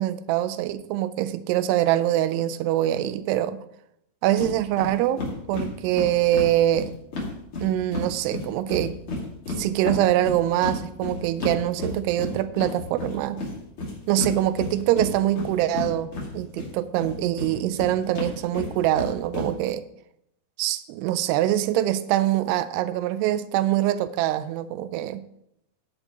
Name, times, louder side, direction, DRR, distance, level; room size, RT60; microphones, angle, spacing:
voice 1, 0.0-3.6 4.2-5.2 5.5-6.9 7.6-9.0 9.6-13.4 14.1-19.8 20.6-25.3, right 13 dB, 80° right, 2.5 m, -24 dB
sound 1, 4.4-4.5 4.8-4.9 5.2-8.1 8.3-16.7 17.0-19.5, left 2 dB, 40° left, 2.4 m, -31 dB
11.5 x 9.9 x 3.0 m
omnidirectional pair, 5.0 m